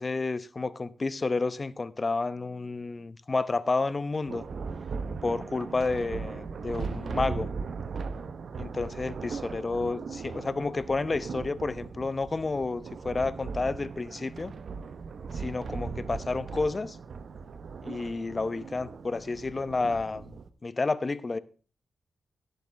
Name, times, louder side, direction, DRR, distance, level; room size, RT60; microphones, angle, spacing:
voice 1, 0.0-4.4 5.2-7.5 8.6-14.5 15.3-17.0 17.8-20.3 20.6-21.4, left 3 dB, 35° left, 0.9 m, -30 dB
Thunder, 4.3-20.5, right 5 dB, 65° right, 1.0 m, -38 dB
18.5 x 8.2 x 3.4 m
cardioid pair, 65°, 0 cm